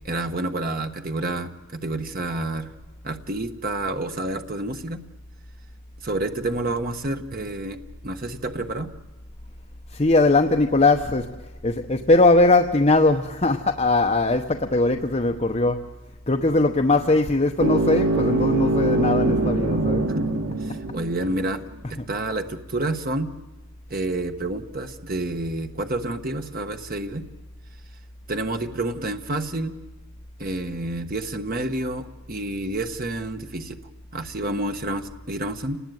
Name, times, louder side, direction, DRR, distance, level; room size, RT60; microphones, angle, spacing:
voice 1, 0.0-2.7 3.0-5.0 6.0-8.9 20.1-20.3 20.6-21.6 21.9-23.3 23.9-27.2 28.3-29.7 30.4-33.8 34.1-35.8, right 2 dB, 40° right, 6 dB, 1.3 m, -29 dB
voice 2, 9.9-15.9 16.3-20.1, left 2 dB, 30° left, 4 dB, 0.9 m, -20 dB
sound 1, 17.6-21.5, right 2 dB, 80° right, 1.6 m, -23 dB
29.0 x 19.5 x 9.3 m, 1.1 s
head